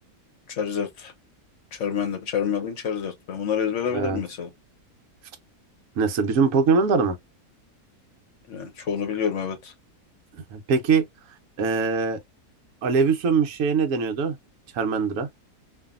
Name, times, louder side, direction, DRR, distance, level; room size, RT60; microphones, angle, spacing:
voice 1, 0.5-1.1 1.7-4.5 8.5-9.7, left 7 dB, 55° left, 1.1 m, -28 dB
voice 2, 6.0-7.2 10.3-11.0 11.6-12.2 12.8-14.4 14.7-15.3, right 5 dB, 65° right, 1.0 m, -22 dB
2.7 x 2.6 x 2.4 m
omnidirectional pair, 1.7 m